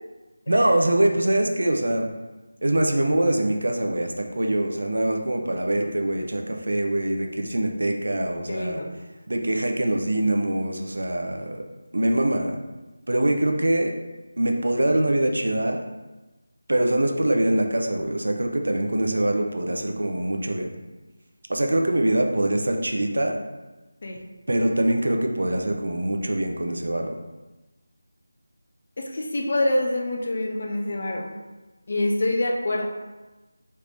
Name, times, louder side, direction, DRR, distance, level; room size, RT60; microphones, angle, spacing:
voice 1, 0.5-2.1 2.6-8.8 9.3-11.6 11.9-12.6 13.1-13.9 14.4-15.8 16.7-20.8 21.5-23.4 24.5-27.2, right 1 dB, 80° right, 3 dB, 0.5 m, -23 dB
voice 2, 8.5-8.9 24.0-24.2 29.0-31.4 31.9-32.9, left 1 dB, 45° left, 1 dB, 0.5 m, -26 dB
3.2 x 2.5 x 3.4 m, 1.1 s
figure-of-eight pair, 175°, 0 cm